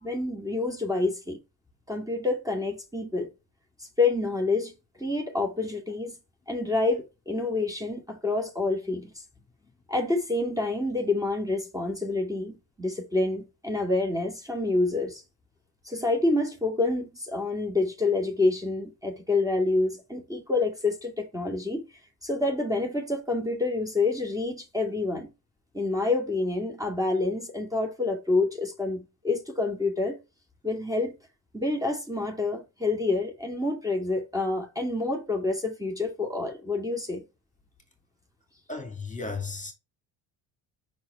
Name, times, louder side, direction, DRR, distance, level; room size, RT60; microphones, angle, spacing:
voice 1, 0.0-1.4 1.9-3.3 3.8-6.2 6.5-9.2 9.9-15.2 15.8-21.9 22.2-25.3 25.7-30.2 30.6-31.2 31.5-37.2, left 3 dB, 10° right, 2.1 m, -28 dB
voice 2, 38.7-39.7, left 3 dB, 15° left, 2.4 m, -34 dB
5.9 x 4.6 x 4.5 m
supercardioid pair, 75°, 45 cm